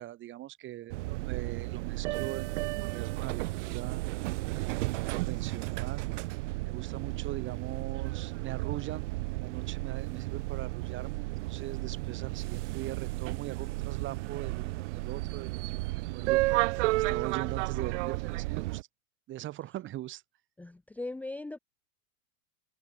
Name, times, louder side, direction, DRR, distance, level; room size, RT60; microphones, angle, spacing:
voice 1, 0.0-4.0 5.1-6.1 6.6-15.6 16.1-16.6 17.0-18.9 19.3-20.2, right 14 dB, 30° right, 1.2 m, -41 dB
sound 1, 0.9-18.8, right 22 dB, 60° right, 1.3 m, -33 dB
voice 2, 20.6-21.6, left 2 dB, 5° left, 0.7 m, -39 dB
hypercardioid pair, 130°, 41 cm